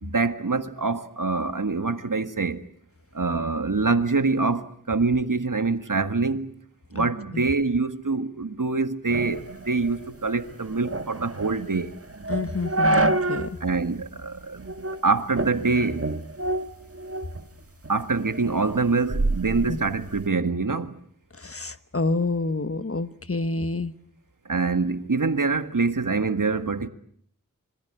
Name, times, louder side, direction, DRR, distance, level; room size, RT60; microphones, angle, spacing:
voice 1, 0.0-2.6 3.1-6.5 6.9-11.9 13.6-14.7 15.0-16.1 17.9-21.0 24.4-26.9, right 4 dB, 70° right, 1.7 m, -25 dB
sound 1, 9.1-13.6 13.9-14.0 14.7-15.0 15.4-17.4 17.8-20.3, right 2 dB, 45° right, 1.5 m, -28 dB
voice 2, 12.3-13.5 19.7-19.8 21.4-23.9, left 3 dB, 45° left, 1.3 m, -28 dB
26.0 x 22.5 x 8.8 m
wide cardioid pair, 45°, 33 cm